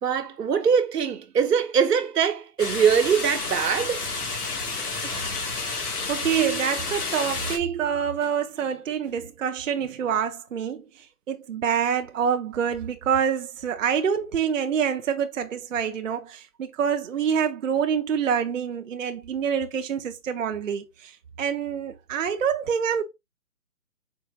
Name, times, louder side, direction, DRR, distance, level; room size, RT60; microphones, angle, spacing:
voice 1, 0.0-4.1, right 7 dB, 90° right, 1.1 m, -22 dB
sound 1, 2.6-7.6, left 3 dB, 75° left, 1.7 m, -30 dB
voice 2, 5.0-5.4 6.1-10.8 11.3-23.0, right 7 dB, 55° right, 0.5 m, -26 dB
4.5 x 2.3 x 3.9 m
hypercardioid pair, 175°, 46 cm